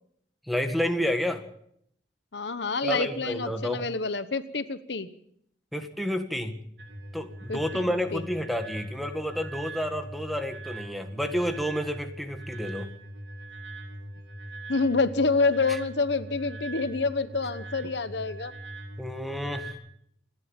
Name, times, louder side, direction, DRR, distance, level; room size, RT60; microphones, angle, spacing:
voice 1, 0.5-1.4 2.8-3.8 5.7-6.6 7.1-12.9 19.0-19.7, equal, ahead, 5 dB, 1.8 m, -30 dB
voice 2, 2.3-5.1 7.5-8.2 14.7-18.5, left 3 dB, 70° left, 12 dB, 1.1 m, -27 dB
sound 1, 6.8-19.7, right 2 dB, 65° right, 7.4 m, -41 dB
28.5 x 11.5 x 9.0 m, 0.71 s
head